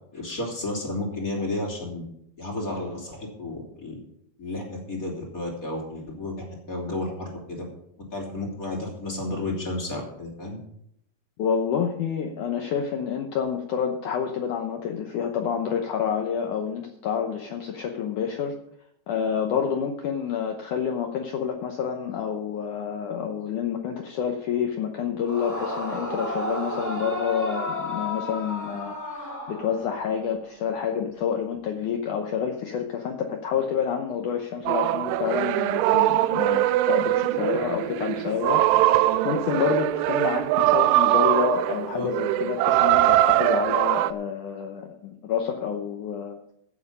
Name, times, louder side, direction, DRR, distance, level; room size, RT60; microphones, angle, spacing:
voice 1, 0.1-2.0 2.4-4.0 4.4-7.6 8.1-10.6 41.9-42.1, left 2 dB, 25° left, -1 dB, 2.8 m, -32 dB
voice 2, 11.4-18.5 19.1-38.6 38.9-46.4, left 7 dB, 75° left, 4 dB, 1.8 m, -28 dB
Yell / Screaming, 25.2-30.1, left 1 dB, 5° left, 1.5 m, -32 dB
sound 1, 34.7-44.1, right 15 dB, 85° right, 2.6 m, -22 dB
15.0 x 7.5 x 5.5 m, 0.73 s
omnidirectional pair, 4.8 m